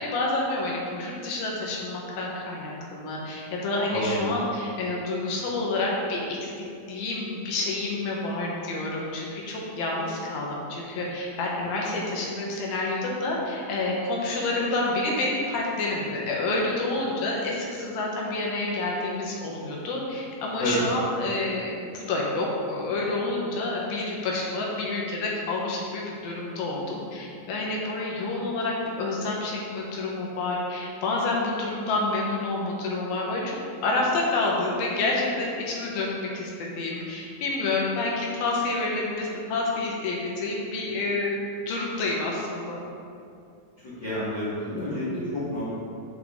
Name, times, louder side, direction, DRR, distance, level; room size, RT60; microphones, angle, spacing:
voice 1, 0.0-6.5 6.9-33.6 33.8-41.3 41.7-42.8, left 2 dB, 75° left, -3 dB, 2.9 m, -28 dB
voice 2, 3.9-4.3 20.6-20.8 43.8-45.6, left 1 dB, 50° left, -10 dB, 1.4 m, -29 dB
9.1 x 5.5 x 3.7 m, 2.5 s
omnidirectional pair, 4.4 m